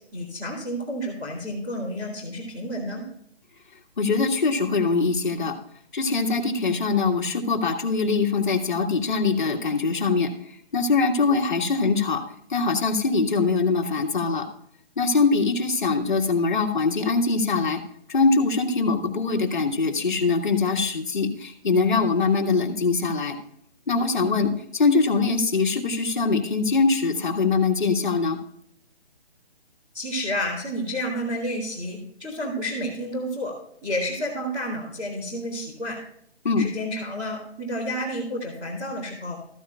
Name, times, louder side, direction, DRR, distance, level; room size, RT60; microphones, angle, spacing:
voice 1, 0.1-3.0 29.9-33.5 33.8-36.0 36.6-39.4, equal, 5° right, -11 dB, 1.5 m, -30 dB
voice 2, 4.0-5.6 5.9-12.2 12.5-14.5 15.0-17.8 18.1-23.4 23.9-28.4 36.4-36.7, left 4 dB, 50° left, 3 dB, 1.7 m, -23 dB
14.0 x 9.3 x 2.3 m, 0.71 s
hypercardioid pair, 180°, 32 cm